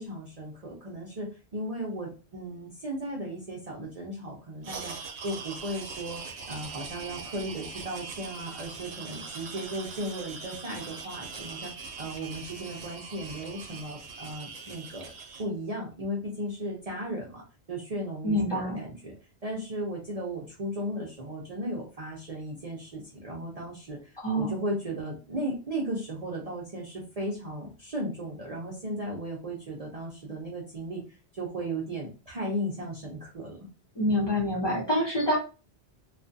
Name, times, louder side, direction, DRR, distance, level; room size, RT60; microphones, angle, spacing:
voice 1, 0.0-5.0 5.2-6.2 6.5-15.1 15.4-19.1 19.4-31.0 31.3-33.7, right 1 dB, 45° right, -2 dB, 0.6 m, -36 dB
sound 1, 4.6-15.5, right 4 dB, 75° right, 0.9 m, -41 dB
voice 2, 18.2-18.8 24.2-24.5 33.9-35.4, equal, 25° left, -4 dB, 0.8 m, -26 dB
2.5 x 2.3 x 2.6 m, 0.32 s
omnidirectional pair, 1.1 m